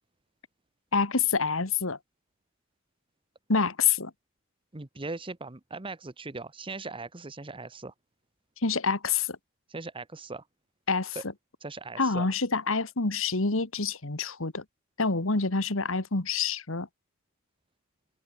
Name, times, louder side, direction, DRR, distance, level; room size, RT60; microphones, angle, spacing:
voice 1, 0.9-2.0 3.5-4.1 8.6-9.4 10.9-11.2 12.0-14.6 15.0-16.9, left 4 dB, 70° left, 1.9 m, -27 dB
voice 2, 4.7-7.9 9.7-10.5 11.1-11.2 11.6-12.3, right 3 dB, 25° right, 1.1 m, -39 dB
head